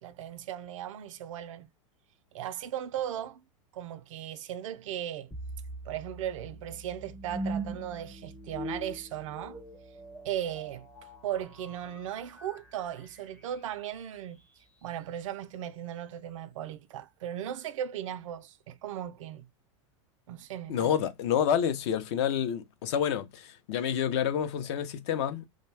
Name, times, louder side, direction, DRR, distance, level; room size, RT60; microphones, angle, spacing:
voice 1, 0.0-1.7 2.3-3.4 3.7-5.3 5.9-9.6 10.2-10.9 11.2-14.4 14.8-19.5 20.3-20.9, right 11 dB, 75° right, 0.4 m, -37 dB
sound 1, 5.3-14.4, right 1 dB, 5° left, 0.5 m, -42 dB
voice 2, 20.7-25.5, left 9 dB, 60° left, 0.6 m, -28 dB
2.6 x 2.2 x 3.2 m
hypercardioid pair, 125°, 17 cm